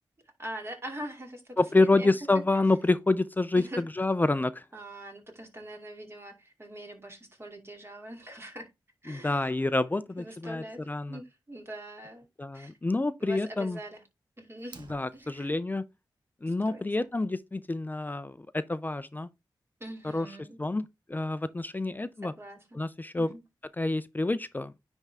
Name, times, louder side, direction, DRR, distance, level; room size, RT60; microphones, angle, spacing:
voice 1, 0.2-2.4 3.6-3.8 4.7-8.7 9.0-9.5 10.2-12.3 12.5-12.7 13.2-14.0 14.4-15.5 16.5-17.0 19.8-20.6 22.2-22.8 23.2-23.4, right 1 dB, 30° right, 2.4 m, -43 dB
voice 2, 1.6-3.6 4.0-4.6 9.1-11.2 12.4-13.8 14.9-15.8 16.4-19.3 20.1-20.3 20.6-22.3 22.7-23.3 23.8-24.7, left 2 dB, 20° left, 0.4 m, -28 dB
Fire, 14.6-15.6, right 4 dB, 65° right, 1.0 m, -52 dB
9.8 x 3.6 x 3.4 m
wide cardioid pair, 75°, 8 cm